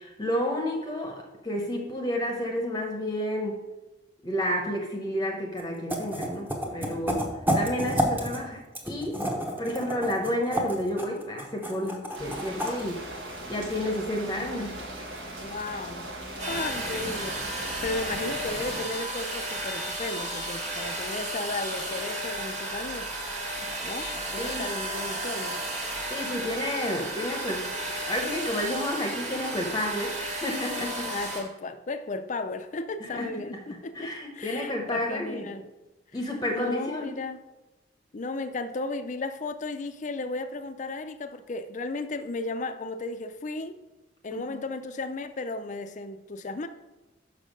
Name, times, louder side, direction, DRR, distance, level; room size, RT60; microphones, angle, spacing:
voice 1, 0.0-3.6 4.2-7.3 7.5-9.2 9.6-13.0 13.5-14.8 23.6-23.7 24.4-24.7 26.1-31.1 33.1-33.4 33.9-35.5 36.1-37.1 44.3-44.6, left 1 dB, 20° left, 1 dB, 0.9 m, -31 dB
sound 1, 5.6-5.7 5.9-8.4 8.7-12.8, equal, 10° right, 1.0 m, -29 dB
sound 2, 12.1-18.8, right 1 dB, 85° right, 1.5 m, -39 dB
voice 2, 15.4-16.1 16.5-23.1 23.8-25.6 31.0-35.6 36.5-37.4 38.1-43.8 44.2-46.7, left 3 dB, 40° left, 10 dB, 0.5 m, -35 dB
sound 3, 16.4-31.4, right 1 dB, 40° right, 1.6 m, -33 dB
6.4 x 5.6 x 5.2 m, 1.1 s
head